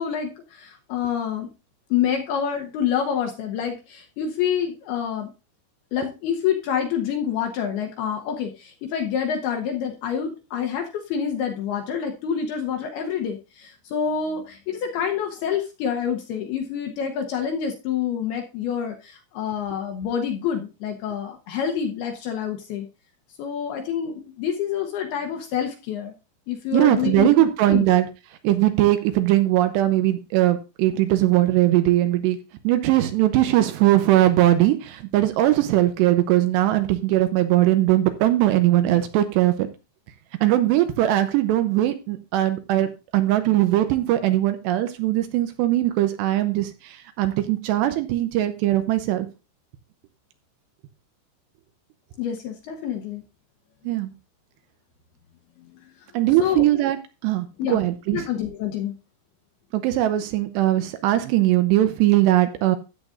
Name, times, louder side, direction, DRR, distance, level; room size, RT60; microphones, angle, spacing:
voice 1, 0.0-1.5 1.9-5.3 5.9-22.9 23.4-26.1 26.5-27.9 52.2-53.2 56.4-56.7 57.6-57.8 58.1-58.9, left 8 dB, 75° left, 3 dB, 2.5 m, -27 dB
voice 2, 26.7-28.1 28.4-32.4 32.6-39.7 40.4-49.3 53.8-54.1 56.1-57.0 57.2-58.2 59.7-62.8, right 14 dB, 80° right, 9 dB, 2.7 m, -20 dB
13.5 x 8.6 x 2.5 m, 0.29 s
omnidirectional pair, 5.3 m